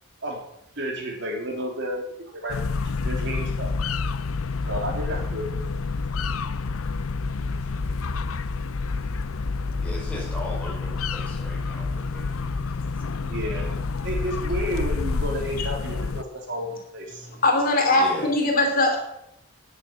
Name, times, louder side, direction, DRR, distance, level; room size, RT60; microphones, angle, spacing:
voice 1, 0.7-2.6 2.8-3.7 4.2-4.3 4.7-5.5 9.4-9.5 13.2-13.7 14.0-17.3 18.2-18.3, equal, 55° right, 0 dB, 3.5 m, -31 dB
sound 1, 2.5-16.2, left 4 dB, 70° left, 0.6 m, -28 dB
voice 2, 9.8-12.4 13.6-13.7 17.9-18.3, left 1 dB, 5° left, -3 dB, 5.1 m, -37 dB
voice 3, 17.4-19.0, left 2 dB, 40° left, 2 dB, 2.8 m, -20 dB
10.0 x 9.9 x 9.0 m, 0.79 s
head